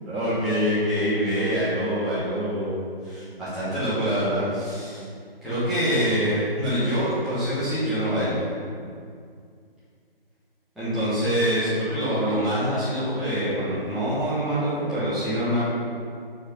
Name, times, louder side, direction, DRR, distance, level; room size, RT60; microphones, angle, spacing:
voice 1, 0.1-5.0 5.4-8.4 10.7-15.6, equal, ahead, -16 dB, 1.2 m, -25 dB
4.6 x 4.6 x 5.5 m, 2.2 s
figure-of-eight pair, 155°, 30 cm